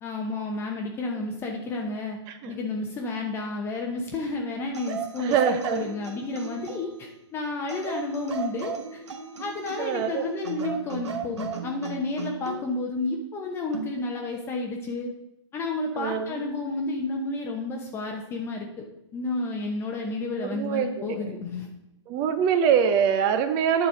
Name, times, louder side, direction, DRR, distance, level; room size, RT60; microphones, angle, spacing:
voice 1, 0.0-2.2 2.5-9.0 9.4-15.1 15.5-18.8 19.1-21.7, left 3 dB, 15° left, 1 dB, 0.8 m, -31 dB
sound 1, 4.7-7.0 7.7-10.0 10.4-12.6 13.7-14.0, right 6 dB, 65° right, 1.2 m, -36 dB
voice 2, 5.2-5.9 9.8-10.3 16.0-16.4 20.2-21.2 22.1-23.9, right 7 dB, 25° right, 7 dB, 0.6 m, -24 dB
9.8 x 4.1 x 6.6 m, 0.89 s
hypercardioid pair, 140°, 16 cm